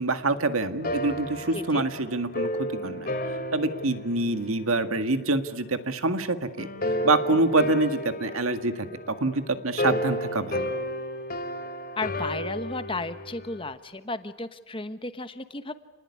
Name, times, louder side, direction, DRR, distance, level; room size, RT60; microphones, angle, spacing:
voice 1, 0.0-3.1 3.5-6.7 7.0-10.7, right 2 dB, 85° right, 9 dB, 1.9 m, -26 dB
sound 1, 0.8-5.4 6.6-13.7, equal, 45° left, 2.7 m, -32 dB
voice 2, 1.5-1.8 12.0-15.7, left 2 dB, 25° left, 11 dB, 1.2 m, -34 dB
29.5 x 20.0 x 9.7 m, 1.3 s
head